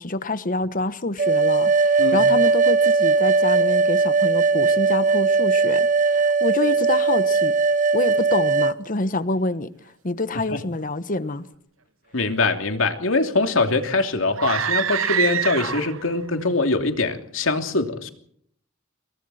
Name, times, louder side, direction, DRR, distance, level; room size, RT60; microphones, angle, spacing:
voice 1, 0.0-7.5 7.9-9.7 10.0-11.5, left 2 dB, 40° left, 1.2 m, -27 dB
sound 1, 1.2-8.8, right 4 dB, 40° right, 1.0 m, -19 dB
voice 2, 12.1-18.1, left 3 dB, 75° left, 3.0 m, -23 dB
sound 2, 14.3-16.1, right 8 dB, 85° right, 1.1 m, -25 dB
28.0 x 22.5 x 4.3 m
head